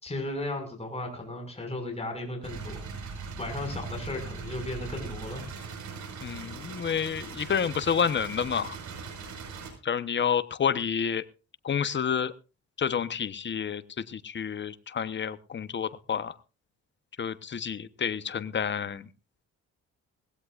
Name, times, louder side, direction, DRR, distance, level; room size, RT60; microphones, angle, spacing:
voice 1, 0.0-2.8 3.4-5.4, left 2 dB, 20° left, 3 dB, 5.9 m, -35 dB
sound 1, 2.4-9.7, right 5 dB, 70° right, 5.3 m, -40 dB
voice 2, 6.2-8.8 9.8-11.2 11.6-12.3 12.8-16.4 17.2-19.1, left 7 dB, 40° left, 13 dB, 1.1 m, -29 dB
19.5 x 16.5 x 2.5 m, 0.32 s
cardioid pair, 90°, 30 cm